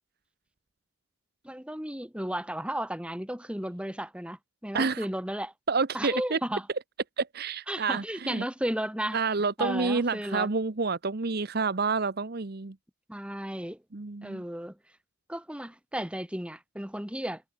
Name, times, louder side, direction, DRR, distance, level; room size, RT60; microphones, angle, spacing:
voice 1, 1.4-5.5 5.9-6.7 7.7-9.2 9.6-10.5 13.1-13.8 14.2-14.8 15.3-17.4, right 1 dB, 5° right, 1.9 m, -34 dB
voice 2, 4.7-5.1 5.7-6.4 7.2-8.4 9.1-12.7 13.9-14.4, right 4 dB, 50° right, 0.9 m, -29 dB
head